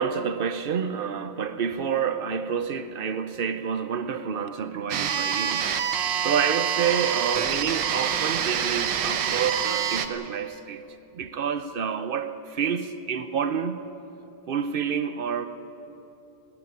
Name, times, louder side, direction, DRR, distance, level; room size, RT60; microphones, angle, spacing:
voice 1, 0.0-5.7 6.2-10.8 11.1-13.9 14.5-15.5, right 7 dB, 70° right, 10 dB, 0.5 m, -28 dB
sound 1, 4.9-10.1, right 8 dB, 90° right, 1.7 m, -26 dB
18.5 x 17.5 x 9.6 m, 3.0 s
omnidirectional pair, 2.0 m